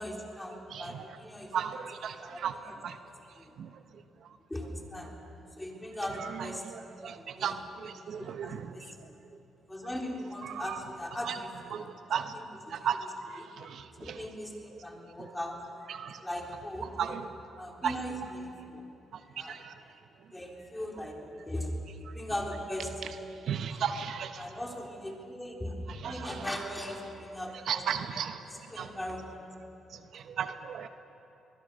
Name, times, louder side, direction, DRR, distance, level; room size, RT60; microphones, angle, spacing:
voice 1, 0.0-1.8 2.2-2.8 3.3-3.5 4.5-5.1 5.6-6.7 7.1-7.5 7.9-9.1 9.7-11.8 12.2-12.5 12.8-12.9 13.4-13.5 13.9-15.6 16.2-17.2 17.6-18.8 19.3-19.6 20.3-21.7 22.1-22.9 23.5-23.8 24.4-27.8 28.5-29.4, left 1 dB, 10° left, 0 dB, 3.8 m, -39 dB
voice 2, 0.7-1.1 1.5-2.6 2.8-3.0 3.6-3.7 6.0-8.7 10.4-10.8 11.2-11.4 11.7-11.8 12.1-12.3 12.7-14.3 15.9-16.2 16.8-17.2 17.8-18.0 19.4-19.7 22.8-23.2 23.5-24.5 25.9-26.6 27.7-28.4 28.8-28.9 30.1-30.9, right 8 dB, 70° right, 9 dB, 1.0 m, -35 dB
23.5 x 21.0 x 6.5 m, 3.0 s
cardioid pair, 90°, 0 cm